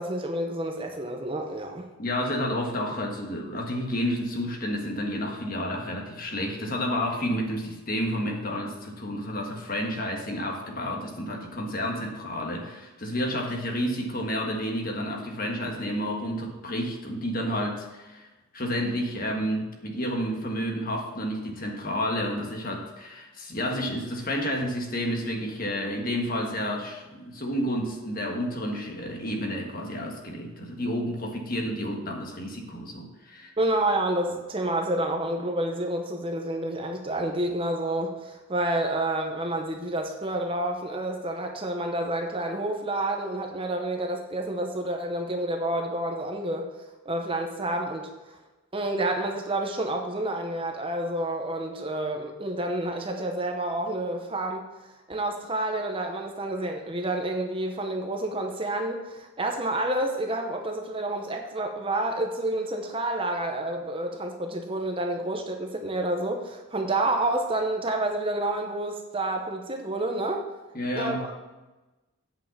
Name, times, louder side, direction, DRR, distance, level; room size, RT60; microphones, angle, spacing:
voice 1, 0.0-1.9 33.6-46.7 47.0-48.1 48.7-54.6 55.1-70.5 70.9-71.3, right 1 dB, 25° right, 3 dB, 0.8 m, -29 dB
voice 2, 2.0-18.3 18.5-33.5 70.7-71.2, equal, 40° left, 1 dB, 1.5 m, -30 dB
8.9 x 5.5 x 7.2 m, 1.1 s
head